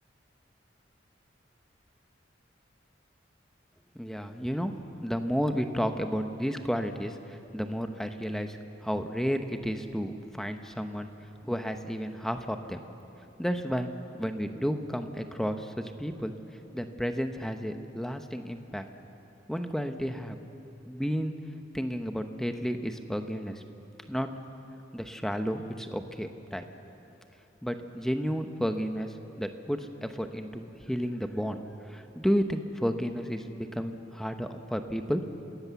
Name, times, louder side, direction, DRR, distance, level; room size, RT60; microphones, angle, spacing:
voice 1, 3.9-4.7 5.0-11.1 11.4-12.8 13.4-13.9 14.2-18.9 19.5-20.4 20.9-21.3 21.7-23.6 24.1-24.3 24.9-26.7 27.6-31.6 31.9-35.5, equal, ahead, 7 dB, 0.9 m, -32 dB
27.0 x 17.0 x 7.0 m, 3.0 s
head